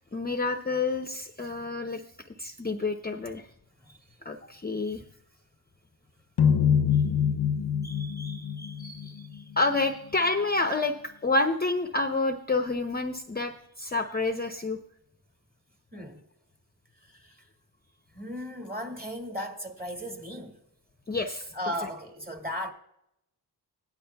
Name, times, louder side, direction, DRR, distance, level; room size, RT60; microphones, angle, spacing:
voice 1, 0.1-2.0 2.4-3.4 4.2-5.0 6.9-7.0 7.8-14.8 21.1-21.5 21.8-21.9, left 3 dB, 25° left, 0.7 m, -29 dB
sound 1, 6.4-9.6, left 7 dB, 65° left, 0.7 m, -25 dB
voice 2, 18.1-20.5 21.6-22.7, equal, 20° right, 2.2 m, -35 dB
16.5 x 10.5 x 2.3 m
cardioid pair, 50°, 41 cm